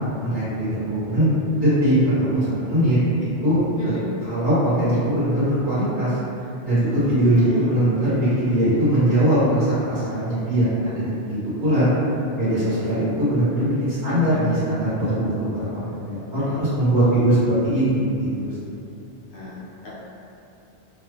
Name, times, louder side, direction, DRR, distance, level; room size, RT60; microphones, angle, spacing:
voice 1, 0.2-1.3 1.5-3.9 4.3-6.2 6.6-11.9 12.3-18.6, right 1 dB, 45° right, -15 dB, 1.4 m, -21 dB
voice 2, 3.8-4.1 7.5-7.6 12.4-12.6 14.0-14.2 19.3-19.9, left 2 dB, 75° left, -9 dB, 1.0 m, -35 dB
2.5 x 2.5 x 2.3 m, 2.6 s
omnidirectional pair, 1.1 m